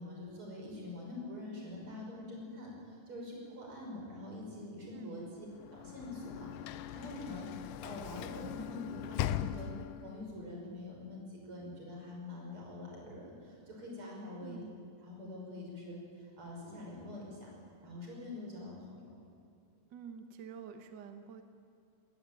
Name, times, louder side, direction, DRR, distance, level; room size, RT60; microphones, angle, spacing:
voice 1, 0.0-5.5 5.7-14.6 15.0-17.5 17.8-19.1, left 2 dB, 40° right, -2 dB, 6.8 m, -45 dB
voice 2, 4.9-5.3 14.4-14.7 19.9-21.4, right 7 dB, 60° right, 7 dB, 1.1 m, -48 dB
Sliding door / Slam, 5.5-10.2, left 11 dB, 85° left, 2.2 m, -40 dB
20.5 x 18.5 x 9.2 m, 2.4 s
omnidirectional pair, 3.6 m